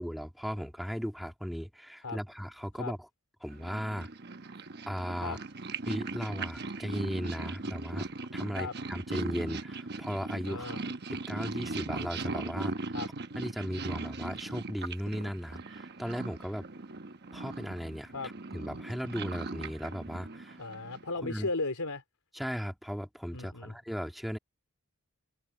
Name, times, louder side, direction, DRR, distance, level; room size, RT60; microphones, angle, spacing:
voice 1, 0.0-3.0 3.4-4.1 4.9-5.4 5.8-10.6 11.1-12.9 13.4-16.7 17.3-18.1 18.5-20.6 21.2-21.5 22.3-24.4, equal, ahead, 2.0 m, -36 dB
Purr, 3.5-21.2, right 3 dB, 50° right, 1.1 m, -39 dB
voice 2, 10.5-10.8 12.9-13.1 18.1-18.3 20.6-22.0 23.3-23.7, left 3 dB, 90° left, 3.4 m, -35 dB
head